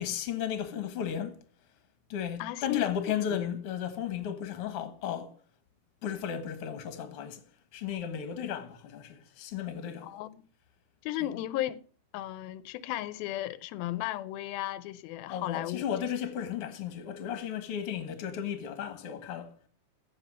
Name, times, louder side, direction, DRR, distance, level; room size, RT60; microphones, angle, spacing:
voice 1, 0.0-1.4 2.1-5.3 6.0-7.4 7.7-10.1 11.2-11.3 15.3-19.7, left 9 dB, 50° left, 1.9 m, -34 dB
voice 2, 2.4-2.9 3.3-3.5 10.0-10.4 11.0-11.8 12.1-15.8, left 14 dB, 85° left, 2.5 m, -35 dB
15.5 x 5.7 x 6.2 m
omnidirectional pair, 4.2 m